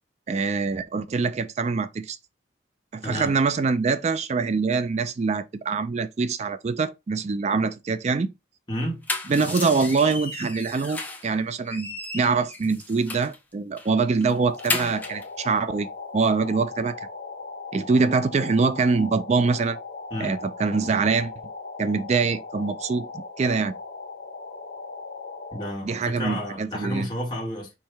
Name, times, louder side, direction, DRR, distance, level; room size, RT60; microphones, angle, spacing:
voice 1, 0.3-2.2 2.9-8.3 9.3-17.0 17.7-19.8 20.2-21.3 21.8-23.7 25.8-27.1, right 4 dB, 40° right, 0.4 m, -24 dB
voice 2, 8.7-9.0 20.1-20.4 25.5-27.7, equal, 25° left, 1.7 m, -31 dB
sound 1, 8.8-11.3 11.6-13.4 13.8-13.9 14.2-15.3, left 3 dB, 10° left, 1.0 m, -33 dB
sound 2, 14.3-25.7, left 3 dB, 60° left, 1.2 m, -38 dB
4.5 x 3.2 x 3.2 m
head